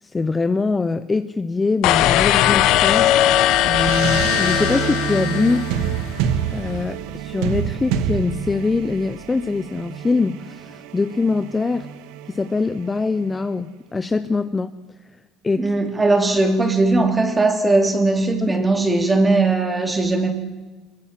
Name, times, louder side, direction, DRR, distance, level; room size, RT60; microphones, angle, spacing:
voice 1, 0.0-3.3 3.6-5.7 6.5-11.9 12.3-14.7 15.4-15.7 18.4-18.6, left 3 dB, 15° left, 11 dB, 0.7 m, -23 dB
sound 1, 1.8-6.0, left 13 dB, 60° left, 1.3 m, -18 dB
sound 2, 2.7-13.4, right 9 dB, 75° right, 1.7 m, -28 dB
voice 2, 15.6-20.3, right 2 dB, 15° right, 6 dB, 3.3 m, -19 dB
24.5 x 22.5 x 7.5 m, 1.2 s
cardioid pair, 150°, 0 cm